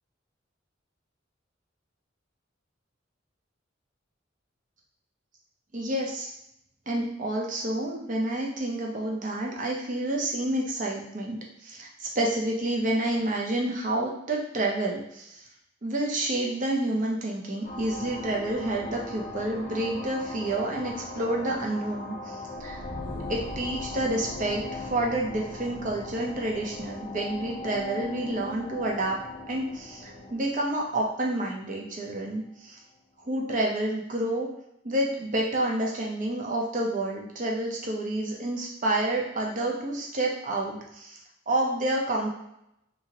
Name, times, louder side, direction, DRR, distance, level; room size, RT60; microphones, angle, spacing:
voice 1, 5.7-6.3 6.9-11.9 12.2-15.4 15.8-22.8 23.3-29.2 29.5-32.8 33.3-34.5 34.8-41.2 41.5-42.3, right 1 dB, 45° right, -1 dB, 0.7 m, -29 dB
sound 1, 17.6-31.8, left 2 dB, 45° left, 0.6 m, -39 dB
2.9 x 2.7 x 2.8 m, 0.77 s
head